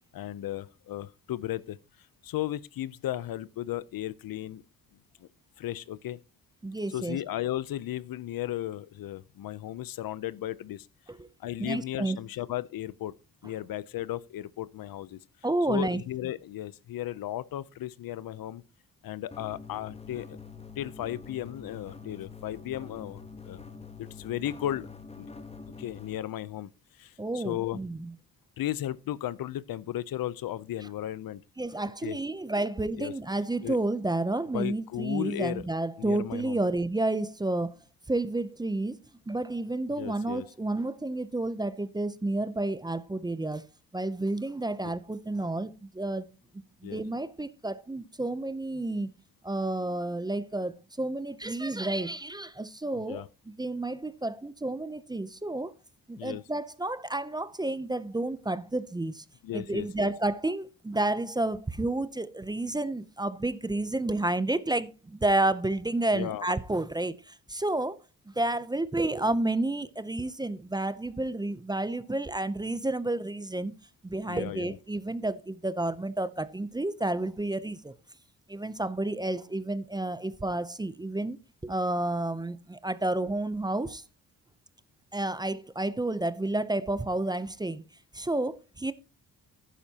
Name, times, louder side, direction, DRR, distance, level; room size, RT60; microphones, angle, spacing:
voice 1, 0.1-1.8 2.2-4.6 5.2-5.3 5.6-6.2 6.9-10.9 11.4-13.1 13.4-15.2 15.7-18.6 19.0-20.4 20.8-23.6 24.0-24.9 25.2-25.3 25.8-26.7 27.0-27.8 28.6-31.4 32.0-32.2 33.0-33.1 33.6-33.8 34.5-35.6 36.0-36.6 40.0-40.5 44.8-44.9 46.8-47.0 53.1-53.3 56.2-56.4 59.4-60.1 66.1-66.5 74.3-74.8, left 13 dB, 75° left, 0.6 m, -35 dB
voice 2, 6.6-7.2 11.1-11.3 11.6-12.2 15.4-16.0 27.2-28.1 31.6-37.8 38.1-39.0 39.3-43.6 43.9-46.3 46.8-49.1 49.4-55.7 56.1-59.2 59.5-68.0 68.3-73.7 74.0-77.9 78.5-81.4 81.6-84.0 85.1-87.8 88.1-88.9, right 2 dB, 10° right, 0.5 m, -30 dB
sound 1, 19.3-26.2, left 4 dB, 20° left, 1.0 m, -45 dB
12.0 x 10.0 x 2.8 m
cardioid pair, 125°, 35 cm